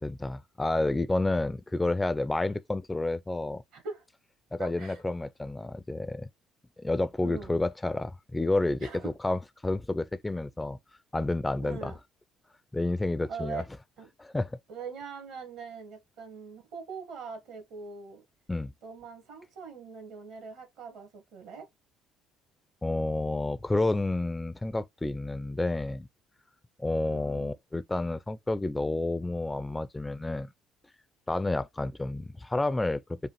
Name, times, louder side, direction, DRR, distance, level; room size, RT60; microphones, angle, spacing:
voice 1, 0.0-3.6 4.5-6.3 6.8-10.8 11.1-11.9 12.7-13.6 14.2-14.5 18.5-18.7 22.8-26.1 26.8-30.5 31.3-33.2, left 2 dB, 15° left, 0.3 m, -30 dB
voice 2, 3.7-4.0 4.6-5.0 7.2-7.5 8.8-9.2 11.6-12.0 13.3-13.6 14.0-14.1 14.7-18.2 18.8-21.7 27.1-27.5, right 5 dB, 65° right, 1.5 m, -42 dB
4.8 x 2.4 x 3.0 m
hypercardioid pair, 55°, 0 cm